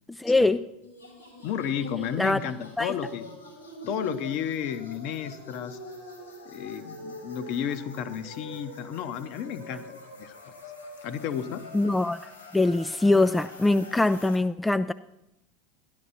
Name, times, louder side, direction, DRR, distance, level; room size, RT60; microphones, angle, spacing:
voice 1, 0.1-0.6 2.2-2.4 2.8-2.9 11.7-12.2 12.5-14.9, left 2 dB, 5° left, 11 dB, 0.3 m, -23 dB
sound 1, 0.8-14.4, left 1 dB, 80° left, 2.7 m, -44 dB
voice 2, 1.4-3.3 3.8-5.8 6.4-10.6 11.0-11.6, left 9 dB, 50° left, 11 dB, 0.8 m, -32 dB
13.0 x 11.0 x 4.2 m, 0.88 s
figure-of-eight pair, 80°, 0 cm